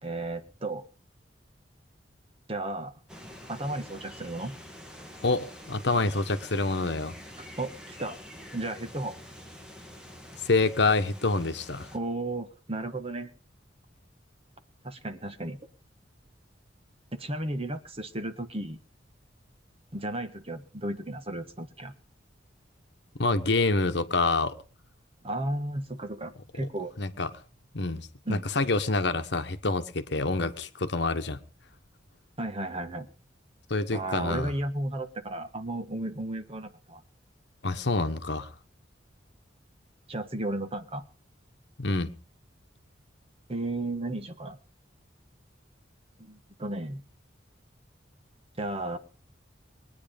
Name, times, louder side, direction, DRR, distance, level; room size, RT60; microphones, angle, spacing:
voice 1, 0.0-0.8 2.5-2.9 3.5-4.5 7.4-8.2 8.5-9.2 11.9-13.3 14.8-15.6 17.1-18.8 19.9-21.9 25.2-26.9 28.3-28.5 32.4-33.1 33.9-37.0 40.1-41.0 43.5-44.6 46.2-47.0 48.6-49.0, right 1 dB, 30° right, 1.4 m, -34 dB
sound 1, 3.1-12.0, equal, 5° right, 2.0 m, -47 dB
voice 2, 5.2-7.1 10.4-11.9 23.2-24.6 27.0-27.3 27.7-31.4 33.7-34.5 37.6-38.5 41.8-42.1, left 3 dB, 65° left, 1.2 m, -27 dB
21.5 x 9.6 x 5.3 m
head